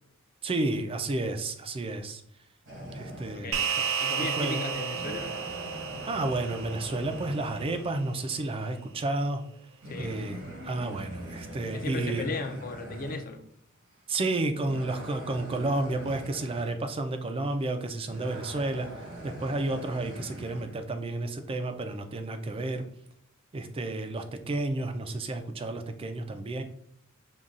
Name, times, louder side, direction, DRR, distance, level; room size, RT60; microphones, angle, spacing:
voice 1, 0.4-2.2 2.9-3.9 4.2-4.6 6.0-9.4 10.0-10.4 10.6-12.2 14.1-18.9 19.2-22.8 23.5-26.6, right 2 dB, 25° right, 7 dB, 0.4 m, -31 dB
sound 1, 2.7-3.5 4.1-4.2 4.9-7.9 9.8-13.3 14.0-14.1 14.6-16.8 18.1-20.7, right 1 dB, 65° right, 1.1 m, -42 dB
sound 2, 3.5-8.2, right 7 dB, 80° right, 0.5 m, -33 dB
voice 2, 4.0-5.3 9.9-10.1 11.7-13.4, left 3 dB, 45° left, 5 dB, 0.5 m, -35 dB
5.4 x 2.2 x 2.4 m, 0.70 s
head